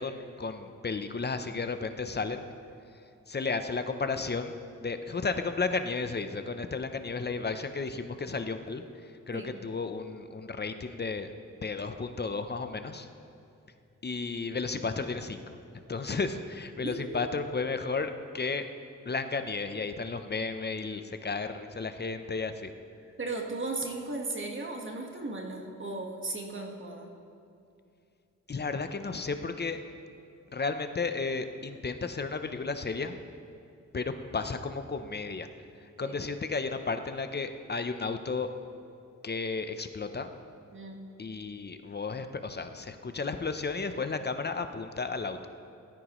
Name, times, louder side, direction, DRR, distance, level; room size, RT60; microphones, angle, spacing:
voice 1, 0.0-2.5 3.3-4.6 4.8-8.8 9.3-11.3 11.6-13.1 14.0-15.4 15.9-18.7 19.1-22.7 28.5-29.8 30.5-33.2 33.9-35.5 36.0-38.5 39.2-40.3 41.2-45.5, left 4 dB, 35° left, 8 dB, 0.7 m, -33 dB
voice 2, 16.8-17.3 23.2-27.1 36.0-36.1 40.7-41.0, right 2 dB, 40° right, 1 dB, 1.5 m, -36 dB
18.0 x 13.5 x 3.1 m, 2.5 s
wide cardioid pair, 90°, 30 cm